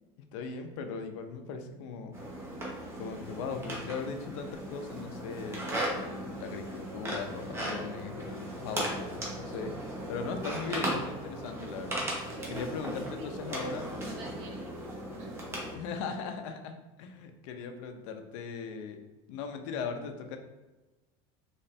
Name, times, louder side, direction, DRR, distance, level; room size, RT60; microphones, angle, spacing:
voice 1, 0.2-2.1 3.0-12.0 12.5-13.9 15.7-19.0 19.3-20.4, left 5 dB, 90° left, 6 dB, 0.6 m, -39 dB
sound 1, 2.1-15.7, right 1 dB, 15° right, 0.7 m, -37 dB
voice 2, 12.3-13.3 13.9-15.4, right 2 dB, 70° right, 2 dB, 1.0 m, -47 dB
4.2 x 3.2 x 3.2 m, 1.1 s
cardioid pair, 175°, 15 cm